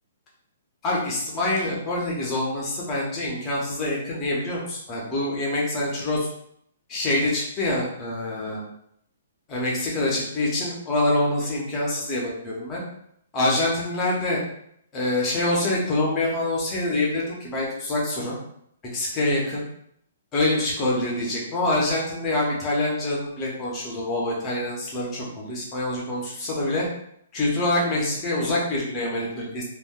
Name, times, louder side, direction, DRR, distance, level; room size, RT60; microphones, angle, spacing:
voice 1, 0.8-6.3 6.9-8.6 9.5-12.8 13.3-14.4 14.9-18.4 18.9-19.6 20.3-26.9 27.3-29.6, left 2 dB, 15° left, -4 dB, 0.7 m, -25 dB
2.3 x 2.1 x 3.6 m, 0.71 s
hypercardioid pair, 175°, 0 cm